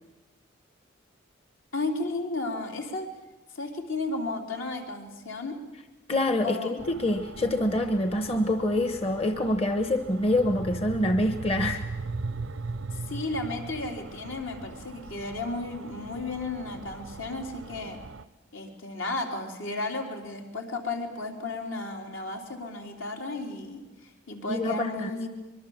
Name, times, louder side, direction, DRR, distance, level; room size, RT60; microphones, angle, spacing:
voice 1, 1.7-3.1 3.5-5.6 6.4-6.7 13.1-18.0 18.5-23.8 24.3-25.3, left 2 dB, 75° left, 2 dB, 3.9 m, -33 dB
voice 2, 6.1-11.9 24.5-25.3, left 1 dB, 30° left, 8 dB, 1.0 m, -26 dB
sound 1, 6.8-18.2, right 3 dB, 80° right, 0.7 m, -39 dB
24.5 x 22.5 x 7.4 m, 1.1 s
head